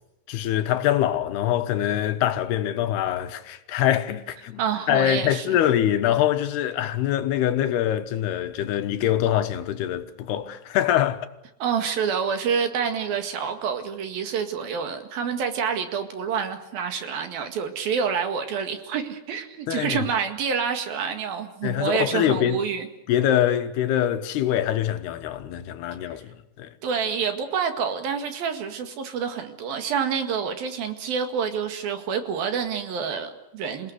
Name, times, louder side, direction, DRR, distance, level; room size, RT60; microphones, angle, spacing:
voice 1, 0.3-4.6 4.9-11.3 19.7-20.0 21.6-22.6 23.1-26.7, left 11 dB, 80° left, 3.2 m, -24 dB
voice 2, 4.6-5.6 11.6-22.9 26.8-33.9, right 6 dB, 65° right, 3.7 m, -27 dB
28.0 x 18.0 x 8.1 m
omnidirectional pair, 4.6 m